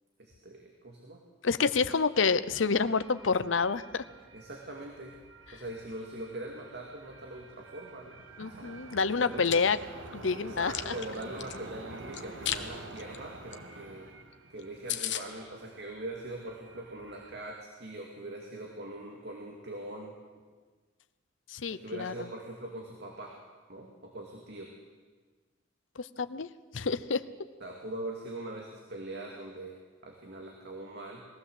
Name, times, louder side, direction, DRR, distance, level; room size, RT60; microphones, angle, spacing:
voice 1, 0.2-1.2 4.3-5.2 5.5-8.2 8.5-8.8 9.2-9.5 10.4-14.1 14.5-20.2 21.7-23.4 23.7-24.7 27.6-31.3, right 1 dB, 60° right, 1 dB, 2.4 m, -42 dB
voice 2, 1.4-4.0 8.4-9.8 10.1-10.9 21.5-22.1 26.0-26.5 26.7-27.2, left 5 dB, 85° left, 14 dB, 0.7 m, -28 dB
sound 1, 1.6-17.5, right 2 dB, 85° right, 1.6 m, -48 dB
Chewing mastication, 9.2-9.6 10.1-11.6 12.1-12.6 13.0-13.2 13.5-13.6 13.9-14.0 14.3-14.4 14.6-14.7 14.9-15.2, left 11 dB, 65° left, 1.1 m, -34 dB
21.5 x 15.5 x 8.0 m, 1.4 s
head